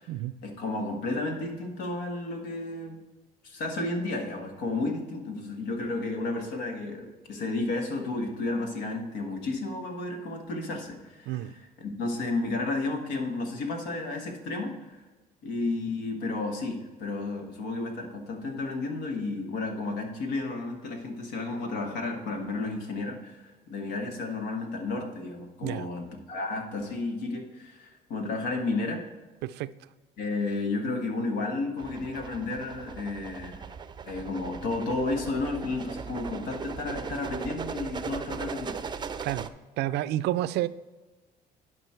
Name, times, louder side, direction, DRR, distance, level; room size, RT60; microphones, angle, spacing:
voice 1, 0.4-3.0 3.4-15.0 15.4-29.0 30.2-33.6 34.1-38.8, left 2 dB, 90° left, 1.6 m, -32 dB
voice 2, 29.4-29.7 39.2-39.5 39.8-40.7, right 14 dB, 80° right, 0.4 m, -29 dB
sound 1, 31.8-39.5, right 6 dB, 25° right, 0.5 m, -38 dB
11.0 x 5.2 x 4.5 m
cardioid pair, 110°, 17 cm